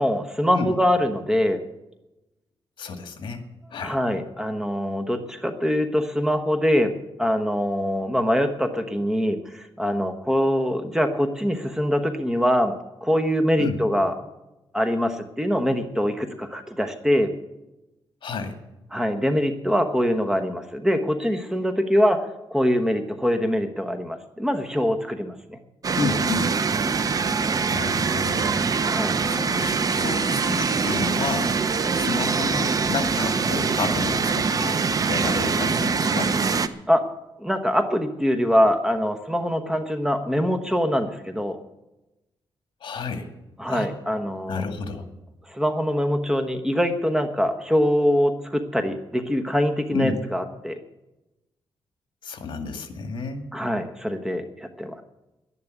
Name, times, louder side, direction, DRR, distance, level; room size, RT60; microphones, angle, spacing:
voice 1, 0.0-1.6 3.8-6.9 7.2-12.7 13.0-14.2 14.7-17.3 18.9-25.6 28.8-29.2 36.9-37.1 37.4-41.6 43.6-44.7 45.5-50.8 53.5-55.0, equal, 5° right, 6 dB, 1.1 m, -23 dB
voice 2, 2.8-3.4 3.7-4.0 13.6-13.8 18.2-18.5 26.0-26.5 27.7-28.6 29.3-31.5 31.9-34.8 35.1-36.3 42.8-43.3 43.7-43.9 44.5-45.1 49.9-50.2 52.2-53.4, left 4 dB, 65° left, 6 dB, 2.1 m, -30 dB
sound 1, 25.8-36.7, right 5 dB, 40° right, 0.7 m, -23 dB
sound 2, 30.6-32.1, left 6 dB, 45° left, 6.3 m, -45 dB
11.5 x 11.0 x 8.1 m, 0.98 s
cardioid pair, 115°, 9 cm